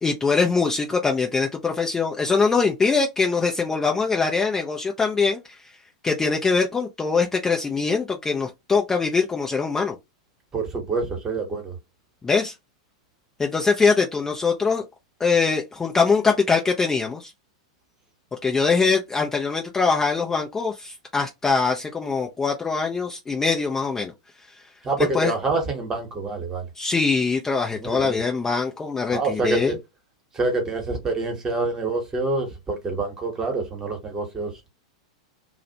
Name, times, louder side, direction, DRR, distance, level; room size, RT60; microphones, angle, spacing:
voice 1, 0.0-5.8 6.0-10.0 12.2-12.6 13.4-14.8 15.2-17.3 18.4-24.1 24.5-24.6 25.0-25.3 26.8-29.8, left 4 dB, 15° left, 0.4 m, -23 dB
voice 2, 10.5-11.7 24.8-26.7 27.8-28.2 29.1-29.8 30.3-34.7, right 3 dB, 20° right, 1.0 m, -26 dB
2.4 x 2.0 x 2.7 m
figure-of-eight pair, 90°, 3 cm